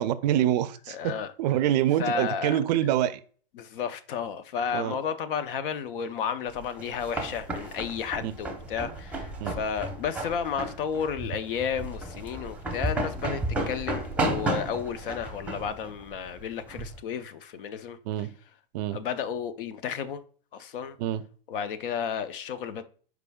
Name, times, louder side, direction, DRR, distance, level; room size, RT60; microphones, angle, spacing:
voice 1, 0.0-1.1 1.4-3.2 4.7-5.0 8.2-8.3 9.4-9.5 18.1-18.4 18.7-19.0 21.0-21.2, right 12 dB, 45° right, 0.5 m, -26 dB
voice 2, 0.9-1.3 2.0-2.6 3.6-18.0 18.9-20.2 20.5-21.0 21.5-22.8, left 7 dB, 65° left, 0.7 m, -32 dB
sound 1, 6.5-17.0, right 2 dB, 5° right, 0.7 m, -33 dB
sound 2, 7.9-14.3, left 7 dB, 45° left, 2.4 m, -54 dB
5.0 x 4.6 x 2.3 m
hypercardioid pair, 125°, 29 cm